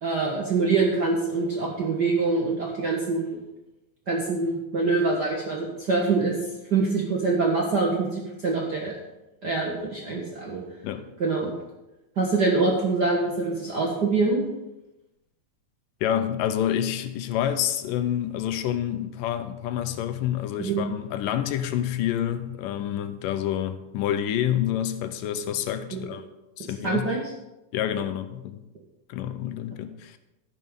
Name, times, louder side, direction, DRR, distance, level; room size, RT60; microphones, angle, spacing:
voice 1, 0.0-3.4 4.1-6.3 6.7-8.9 9.4-10.6 11.2-11.5 12.2-14.4 20.6-20.8 25.9-26.0 26.8-27.2, right 3 dB, 50° right, 1.2 m, -24 dB
voice 2, 16.0-26.2 26.6-27.1 27.7-28.6 29.1-30.2, left 10 dB, 85° left, 2.4 m, -28 dB
12.5 x 10.5 x 3.8 m
omnidirectional pair, 3.8 m